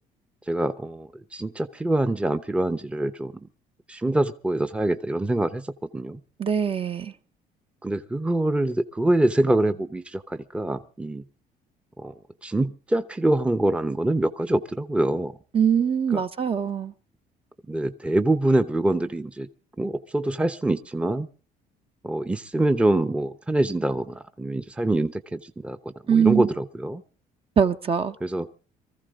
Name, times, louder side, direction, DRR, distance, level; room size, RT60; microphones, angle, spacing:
voice 1, 0.5-3.3 3.9-6.2 7.8-11.2 12.0-12.1 12.4-15.3 16.1-16.2 17.7-19.5 19.8-21.3 22.0-27.0 28.2-28.5, right 1 dB, 5° right, 0.8 m, -25 dB
voice 2, 6.4-7.1 15.5-16.9 26.1-26.5 27.6-28.1, right 7 dB, 35° right, 0.9 m, -22 dB
23.5 x 14.5 x 3.7 m
cardioid pair, 110°, 17 cm